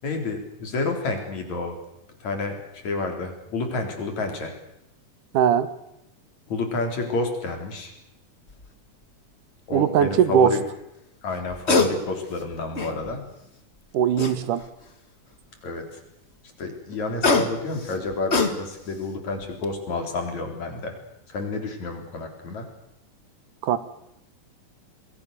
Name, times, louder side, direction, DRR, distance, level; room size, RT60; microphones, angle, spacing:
voice 1, 0.0-1.8 2.2-2.6 2.8-4.5 6.5-7.9 9.7-10.6 11.2-13.2 15.6-15.8 16.6-20.9 21.3-22.7, left 3 dB, 60° left, 4 dB, 5.1 m, -29 dB
voice 2, 5.3-5.7 9.7-10.5 13.9-14.6 23.6-23.8, right 8 dB, 75° right, 14 dB, 2.6 m, -20 dB
sound 1, 8.5-8.7 11.4-11.9 12.3-13.2 14.2-14.8 16.9-18.9 19.4-19.6, left 3 dB, 30° left, 1.3 m, -24 dB
28.0 x 21.0 x 6.8 m, 0.83 s
omnidirectional pair, 3.7 m